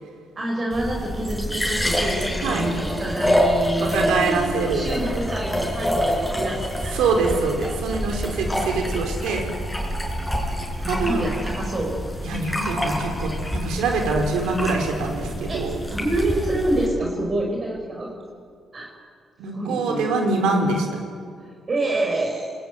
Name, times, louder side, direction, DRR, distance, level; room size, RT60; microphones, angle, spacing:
voice 1, 0.4-7.1 10.8-12.0 15.5-18.1 18.7-18.9 19.5-20.1 21.7-22.5, right 1 dB, 35° right, 0 dB, 5.1 m, -27 dB
sound 1, 0.7-16.9, equal, 5° left, 6.0 m, -27 dB
voice 2, 3.8-4.9 6.9-9.5 10.9-11.2 12.2-15.8 19.4-20.9, right 3 dB, 85° right, 3 dB, 5.0 m, -24 dB
27.0 x 20.5 x 9.4 m, 2.2 s
cardioid pair, 90°, 0 cm